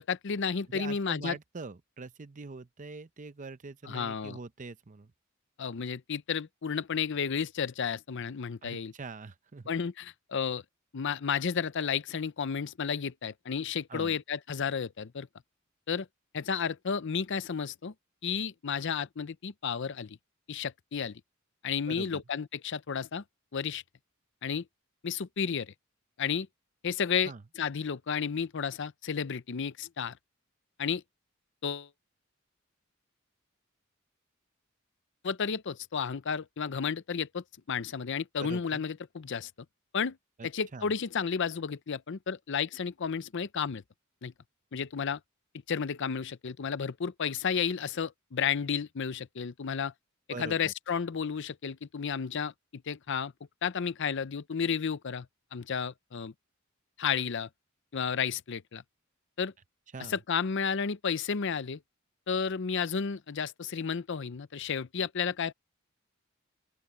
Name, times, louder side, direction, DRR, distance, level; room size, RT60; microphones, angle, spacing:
voice 1, 0.0-1.4 3.9-4.4 5.6-8.9 9.7-10.6 10.9-15.3 15.9-16.1 16.3-17.9 18.2-20.2 20.5-21.2 21.6-23.2 23.5-23.8 24.4-24.6 25.0-25.7 26.2-26.5 26.8-30.2 30.8-31.0 31.6-31.9 35.2-39.5 39.9-40.2 40.4-43.8 44.2-44.3 44.7-45.2 45.7-49.9 50.4-53.3 53.6-55.3 55.5-56.3 57.0-57.5 57.9-58.8 59.4-59.5 60.1-61.8 62.3-65.5, left 6 dB, 60° left, 0.6 m, -32 dB
voice 2, 0.7-5.1 8.6-9.7 13.9-14.2 21.9-22.2 27.2-27.4 38.4-38.8 40.4-40.9 50.3-50.7 59.9-60.2, right 3 dB, 40° right, 0.7 m, -43 dB
open air
head